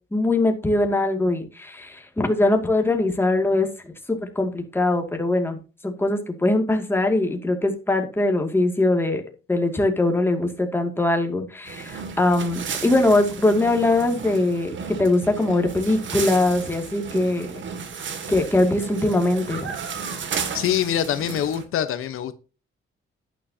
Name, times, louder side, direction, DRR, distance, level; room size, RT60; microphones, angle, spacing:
voice 1, 0.1-5.6 5.8-9.2 9.5-17.6 18.3-19.8, left 2 dB, 10° left, 2.3 m, -22 dB
sound 1, 11.6-21.6, right 6 dB, 65° right, 2.2 m, -34 dB
voice 2, 20.5-22.3, left 10 dB, 85° left, 1.0 m, -24 dB
11.0 x 9.5 x 2.8 m
cardioid pair, 120°, 21 cm